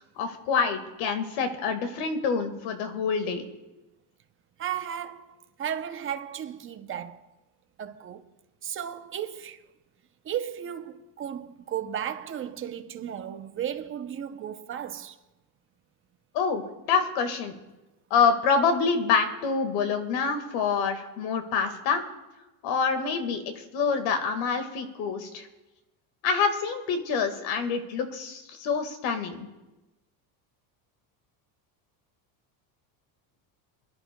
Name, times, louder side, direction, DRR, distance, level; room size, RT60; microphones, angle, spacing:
voice 1, 0.2-3.5 16.3-16.6 16.9-17.6 18.1-22.0 22.6-25.5 26.2-29.5, left 5 dB, 70° left, 1.8 m, -26 dB
voice 2, 4.6-7.3 7.8-8.3 8.6-9.6 10.2-15.2, right 9 dB, 25° right, 0.6 m, -35 dB
27.0 x 11.5 x 2.2 m
cardioid pair, 145°, 50 cm